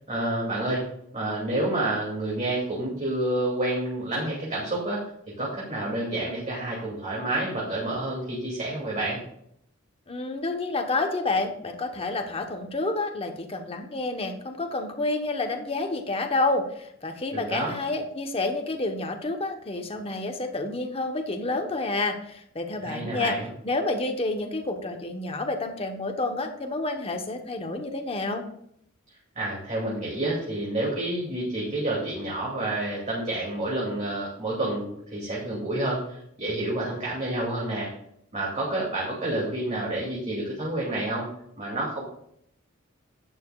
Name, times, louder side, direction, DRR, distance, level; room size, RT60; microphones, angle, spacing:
voice 1, 0.1-0.8 1.1-5.0 5.4-9.2 17.3-17.8 22.8-23.5 29.4-37.9 38.3-41.3 41.6-42.0, right 1 dB, 35° right, -5 dB, 2.5 m, -29 dB
voice 2, 10.1-23.4 23.6-28.5, left 2 dB, 30° left, 5 dB, 1.0 m, -29 dB
11.5 x 9.2 x 2.4 m, 0.71 s
head